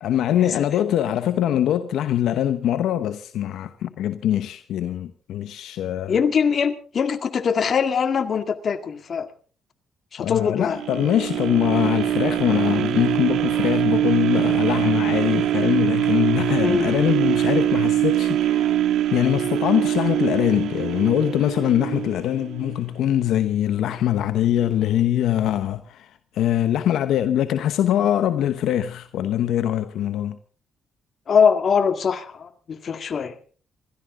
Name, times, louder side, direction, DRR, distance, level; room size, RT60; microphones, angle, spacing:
voice 1, 0.0-6.2 10.2-18.7 19.1-30.4, left 11 dB, 80° left, 0.9 m, -23 dB
voice 2, 6.1-9.3 10.1-10.8 16.6-16.9 31.3-33.4, left 6 dB, 50° left, 1.9 m, -22 dB
sound 1, 10.7-22.8 23.3-23.4, right 12 dB, 80° right, 1.7 m, -23 dB
27.5 x 13.5 x 3.8 m
cardioid pair, 90°, 0 cm